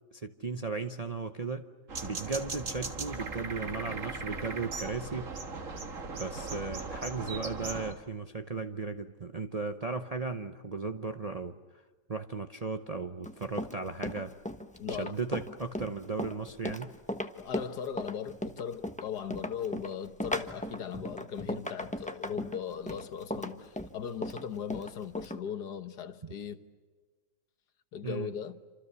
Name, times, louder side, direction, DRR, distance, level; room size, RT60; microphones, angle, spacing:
voice 1, 0.1-1.7 2.0-5.3 6.1-11.6 12.1-14.3 14.9-16.9 28.0-28.3, right 4 dB, 35° right, 0.6 m, -36 dB
sound 1, 1.9-7.9, right 4 dB, 50° right, 2.1 m, -38 dB
Run, 13.2-25.4, left 1 dB, 5° left, 0.9 m, -37 dB
voice 2, 14.8-15.2 17.4-26.6 27.9-28.6, left 8 dB, 75° left, 1.7 m, -38 dB
28.0 x 26.5 x 6.9 m
omnidirectional pair, 1.8 m